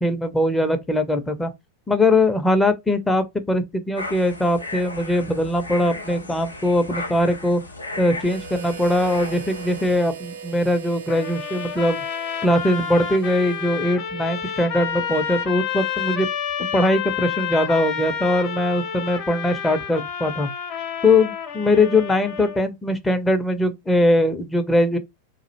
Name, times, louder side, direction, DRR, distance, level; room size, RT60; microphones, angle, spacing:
voice 1, 0.0-1.5 1.9-7.6 8.0-12.0 12.4-16.3 16.6-20.5 21.0-25.0, left 1 dB, 10° left, 0.4 m, -21 dB
sound 1, 4.0-10.0, left 2 dB, 85° left, 0.5 m, -35 dB
Harmonica, 8.2-14.2, right 7 dB, 65° right, 0.5 m, -40 dB
sound 2, 11.1-22.6, left 8 dB, 40° left, 0.7 m, -29 dB
2.4 x 2.0 x 2.7 m
figure-of-eight pair, 90°, 0 cm